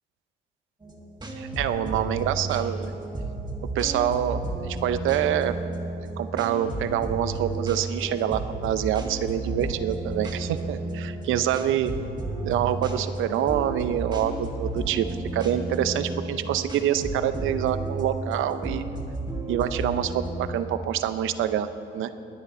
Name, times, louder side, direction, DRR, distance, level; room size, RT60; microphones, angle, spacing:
sound 1, 0.8-20.5, right 2 dB, 20° right, 2.0 m, -33 dB
voice 1, 1.4-2.9 3.7-5.5 6.2-11.9 12.4-15.1 15.3-18.8 19.5-21.7 21.9-22.1, right 10 dB, 85° right, 12 dB, 0.6 m, -26 dB
20.5 x 8.9 x 4.2 m, 2.7 s
cardioid pair, 90°, 20 cm